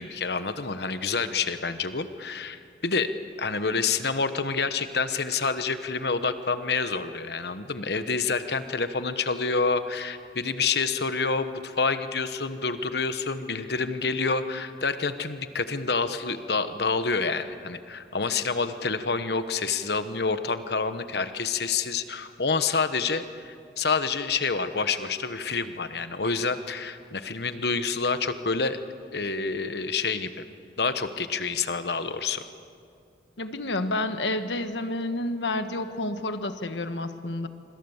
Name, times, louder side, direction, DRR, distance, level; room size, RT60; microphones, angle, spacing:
voice 1, 0.0-3.1 3.4-28.8 29.1-30.4 30.8-32.5, left 4 dB, 65° left, 10 dB, 1.1 m, -28 dB
voice 2, 33.4-37.5, left 2 dB, 85° left, 9 dB, 1.4 m, -29 dB
26.0 x 25.5 x 7.2 m, 2.4 s
head